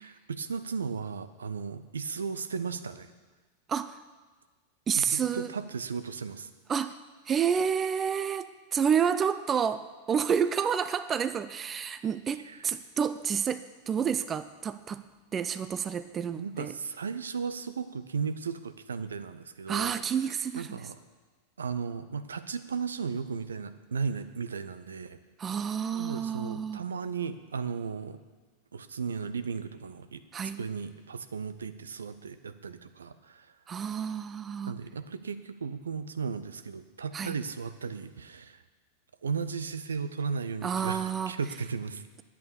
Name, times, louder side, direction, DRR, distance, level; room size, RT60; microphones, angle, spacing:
voice 1, 0.0-3.1 5.0-6.5 12.4-12.6 16.4-20.0 20.6-21.0 21.6-25.2 25.9-28.2 28.7-30.2 30.6-33.5 34.7-38.6 39.2-42.0, right 5 dB, 70° right, 12 dB, 0.6 m, -35 dB
voice 2, 4.9-5.5 6.7-6.9 7.3-15.0 15.3-16.7 19.7-20.8 25.4-26.8 30.3-30.6 33.7-34.7 37.1-37.4 40.6-41.3, right 7 dB, 25° right, 13 dB, 0.4 m, -29 dB
11.0 x 8.5 x 6.9 m, 1.3 s
figure-of-eight pair, 90°, 0 cm